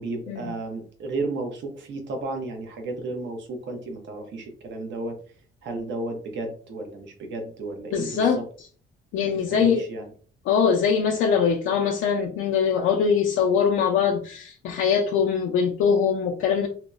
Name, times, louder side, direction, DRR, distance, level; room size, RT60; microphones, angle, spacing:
voice 1, 0.0-5.2 5.6-8.4 9.5-10.1, right 2 dB, 70° right, 3 dB, 0.8 m, -33 dB
voice 2, 7.9-8.7 9.1-9.8 10.5-16.7, left 6 dB, 85° left, 1 dB, 0.4 m, -22 dB
2.8 x 2.0 x 2.3 m, 0.43 s
cardioid pair, 90°, 20 cm